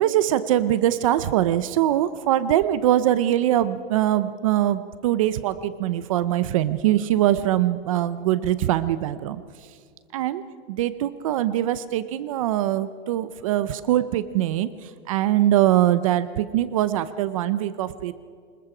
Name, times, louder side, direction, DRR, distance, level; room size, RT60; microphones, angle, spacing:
voice 1, 0.0-9.4 10.1-10.4 10.7-18.1, right 12 dB, 30° right, 14 dB, 0.5 m, -22 dB
26.0 x 21.0 x 4.9 m, 2.1 s
supercardioid pair, 170°, 33 cm